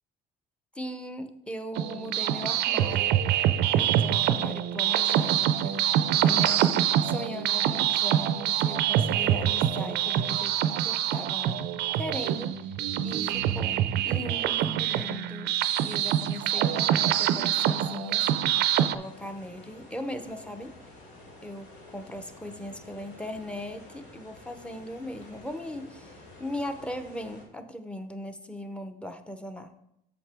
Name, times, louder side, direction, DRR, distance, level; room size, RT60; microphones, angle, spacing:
voice 1, 0.7-3.2 3.7-5.8 6.1-11.7 11.9-12.5 13.0-15.5 15.8-18.3 18.7-20.7 21.4-26.1 26.4-29.8, left 1 dB, 5° left, 8 dB, 0.7 m, -39 dB
sound 1, 1.8-19.0, right 11 dB, 80° right, 0.4 m, -25 dB
sound 2, 19.0-27.4, left 2 dB, 90° left, 2.4 m, -50 dB
7.7 x 6.7 x 3.4 m, 0.80 s
cardioid pair, 110°, 17 cm